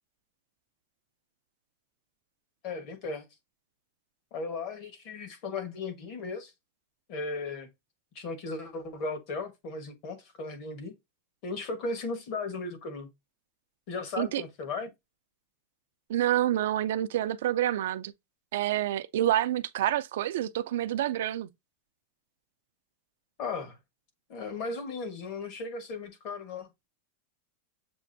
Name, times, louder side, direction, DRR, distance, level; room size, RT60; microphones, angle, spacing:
voice 1, 2.6-3.3 4.3-6.5 7.1-7.7 8.1-11.0 11.4-13.1 13.9-14.9 23.4-23.8 24.3-26.7, left 3 dB, 45° left, 1.3 m, -36 dB
voice 2, 16.1-18.1 18.5-21.5, right 12 dB, 70° right, 0.4 m, -28 dB
7.0 x 2.5 x 2.6 m
supercardioid pair, 160°, 0 cm